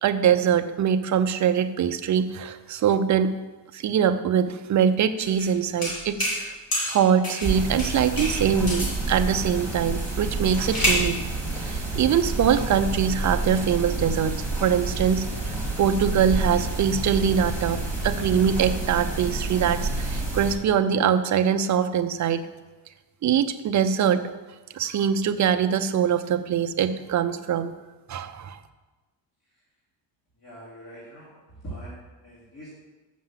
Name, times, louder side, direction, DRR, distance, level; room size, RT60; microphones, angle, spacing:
voice 1, 0.0-3.3 3.7-6.5 6.9-11.2 11.6-22.4 23.2-24.2 24.7-27.7 28.1-28.6, right 8 dB, 40° right, 9 dB, 0.6 m, -23 dB
sound 1, 5.2-5.5 5.8-6.4 6.7-7.5 7.8-9.0 10.0-11.1, equal, 50° left, 3.8 m, -27 dB
sound 2, 7.4-20.5, right 2 dB, 5° left, 2.1 m, -29 dB
voice 2, 30.4-31.3 31.6-32.8, right 1 dB, 35° left, -8 dB, 2.9 m, -41 dB
7.3 x 6.6 x 7.4 m, 1.2 s
cardioid pair, 160°, 44 cm